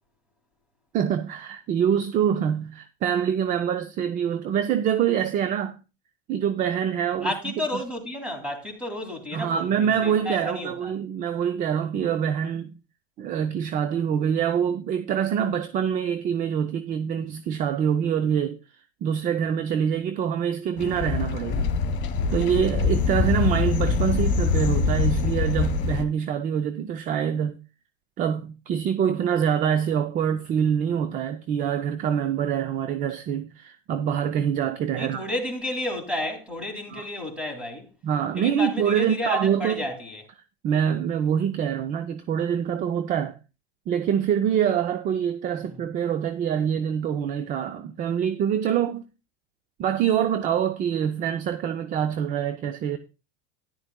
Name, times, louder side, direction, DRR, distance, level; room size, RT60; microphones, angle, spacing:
voice 1, 0.9-5.8 6.3-7.3 9.3-12.7 13.2-18.6 19.0-21.7 22.3-27.6 28.2-35.3 36.9-37.0 38.0-39.8 40.6-43.4 43.9-49.0 49.8-53.0, right 8 dB, 25° right, 0.4 m, -25 dB
voice 2, 7.2-10.9 34.9-37.9 38.3-40.2 45.5-45.8, left 1 dB, 5° right, 2.4 m, -31 dB
sound 1, 20.8-26.0, left 5 dB, 35° left, 1.7 m, -24 dB
13.0 x 10.5 x 2.2 m
supercardioid pair, 140°, 32 cm